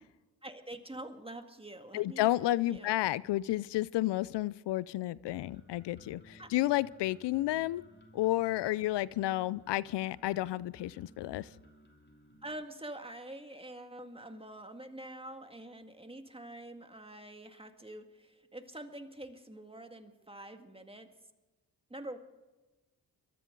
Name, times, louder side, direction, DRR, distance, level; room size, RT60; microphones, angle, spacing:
voice 1, 0.4-3.0 6.4-6.5 12.4-21.1 21.9-22.2, right 1 dB, 15° right, 6 dB, 2.0 m, -46 dB
voice 2, 1.9-7.8 8.1-11.5, left 16 dB, 80° left, 21 dB, 0.6 m, -31 dB
sound 1, 5.3-12.5, equal, 25° left, 2.7 m, -59 dB
23.5 x 13.5 x 3.9 m, 1.2 s
supercardioid pair, 50°, 41 cm